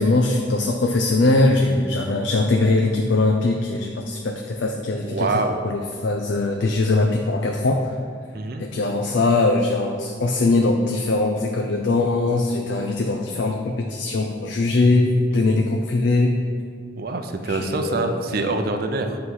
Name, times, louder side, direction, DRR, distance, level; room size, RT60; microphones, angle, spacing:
voice 1, 0.0-5.3 5.6-8.0 8.6-16.4 17.5-18.6, left 2 dB, 75° left, 3 dB, 0.5 m, -21 dB
voice 2, 4.8-5.6 8.3-8.6 15.3-15.6 17.0-19.2, right 3 dB, 55° right, 6 dB, 0.5 m, -26 dB
8.3 x 3.2 x 5.5 m, 2.1 s
head